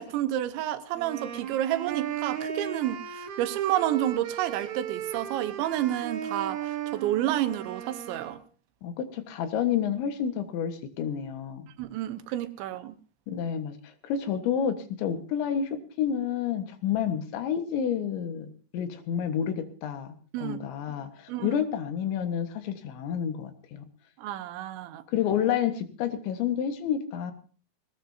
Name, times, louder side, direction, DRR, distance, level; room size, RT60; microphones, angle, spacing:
voice 1, 0.0-8.4 11.8-13.0 20.3-20.6 21.3-21.6 24.2-25.0, right 13 dB, 90° right, 11 dB, 3.4 m, -30 dB
sound 1, 0.9-8.4, right 9 dB, 65° right, 1.9 m, -36 dB
voice 2, 8.8-11.7 13.3-13.8 14.0-18.5 18.7-21.1 21.4-23.9 25.1-27.3, left 8 dB, 85° left, 8 dB, 3.8 m, -29 dB
19.5 x 19.0 x 2.8 m, 0.39 s
omnidirectional pair, 5.1 m